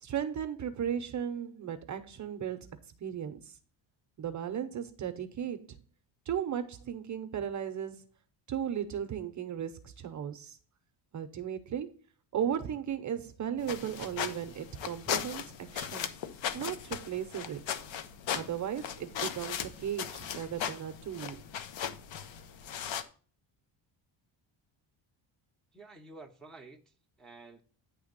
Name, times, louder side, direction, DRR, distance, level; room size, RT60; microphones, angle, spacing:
voice 1, 0.0-2.7 3.0-3.5 4.2-5.8 6.3-8.0 8.5-10.6 11.1-11.9 12.3-15.4 15.7-16.1 16.5-17.6 18.3-21.4, right 9 dB, 40° right, 0.7 m, -36 dB
sound 1, 13.6-23.0, left 9 dB, 70° left, 0.9 m, -38 dB
voice 2, 25.7-27.6, right 3 dB, ahead, 0.6 m, -51 dB
9.5 x 3.4 x 6.6 m
cardioid pair, 155°, 47 cm